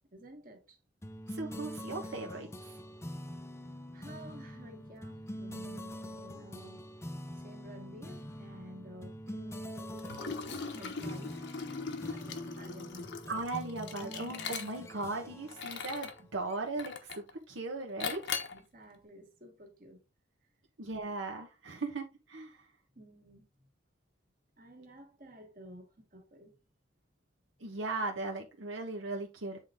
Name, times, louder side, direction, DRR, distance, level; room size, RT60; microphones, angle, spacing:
voice 1, 0.1-0.8 3.9-6.8 7.4-11.5 12.1-13.2 18.5-20.0 23.0-23.5 24.6-26.6, equal, 45° right, 1.9 m, -52 dB
sound 1, 1.0-16.9, equal, 15° left, 0.5 m, -45 dB
voice 2, 1.3-2.5 13.3-18.2 20.8-22.5 27.6-29.6, right 2 dB, 80° right, 1.2 m, -38 dB
Liquid, 10.0-15.0 15.5-16.2 16.8-17.3 18.0-18.6, left 5 dB, 65° left, 0.9 m, -40 dB
8.0 x 3.8 x 3.6 m
head